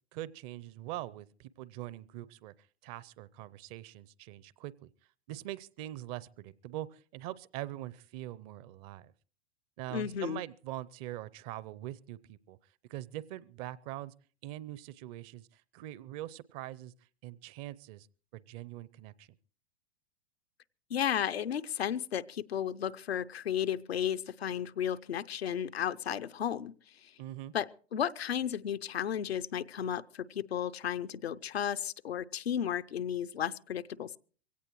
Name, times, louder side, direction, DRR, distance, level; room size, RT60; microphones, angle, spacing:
voice 1, 0.1-4.9 5.3-9.1 9.8-12.6 12.9-14.1 14.4-16.9 17.2-18.1 18.3-19.3 27.2-27.5, right 14 dB, 35° right, 0.6 m, -43 dB
voice 2, 9.9-10.4 20.9-26.7 27.0-27.1 27.5-34.2, left 9 dB, 75° left, 0.7 m, -34 dB
23.0 x 17.0 x 3.1 m
figure-of-eight pair, 100°, 31 cm